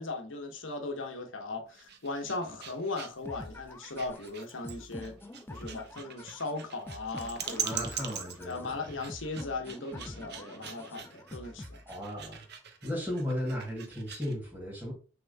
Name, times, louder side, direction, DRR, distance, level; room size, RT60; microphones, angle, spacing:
voice 1, 0.0-5.2 5.5-7.8 8.4-11.8, left 3 dB, 70° left, 1.0 m, -38 dB
sound 1, 1.7-14.4, right 8 dB, 60° right, 0.8 m, -43 dB
sound 2, 3.2-12.2, left 1 dB, 10° left, 0.4 m, -46 dB
voice 2, 7.6-8.9 11.9-12.4 12.8-14.9, equal, 10° right, 2.4 m, -35 dB
6.0 x 3.6 x 2.2 m
head